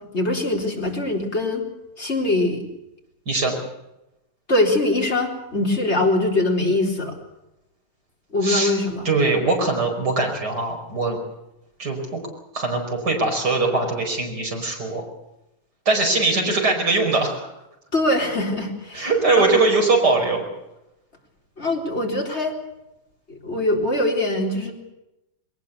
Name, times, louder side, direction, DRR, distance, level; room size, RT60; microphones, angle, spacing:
voice 1, 0.1-1.6 2.0-2.7 4.5-7.1 8.3-9.1 17.9-19.1 19.4-19.5 21.6-22.6 23.3-24.7, left 2 dB, 30° left, 0 dB, 4.2 m, -22 dB
voice 2, 8.4-8.7 9.0-11.2 11.8-12.2 12.5-15.0 15.9-17.5 18.9-20.5, right 3 dB, 45° right, 1 dB, 5.7 m, -21 dB
21.5 x 19.5 x 8.2 m, 0.90 s
omnidirectional pair, 2.4 m